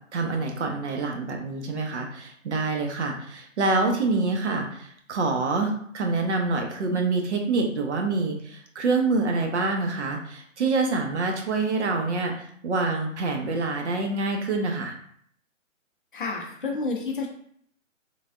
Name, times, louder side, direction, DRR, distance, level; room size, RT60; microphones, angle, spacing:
voice 1, 0.1-14.9, right 3 dB, 60° right, 3 dB, 0.7 m, -26 dB
voice 2, 16.1-17.3, left 3 dB, 40° left, 0 dB, 0.5 m, -29 dB
3.2 x 2.2 x 2.4 m, 0.65 s
hypercardioid pair, 155°, 39 cm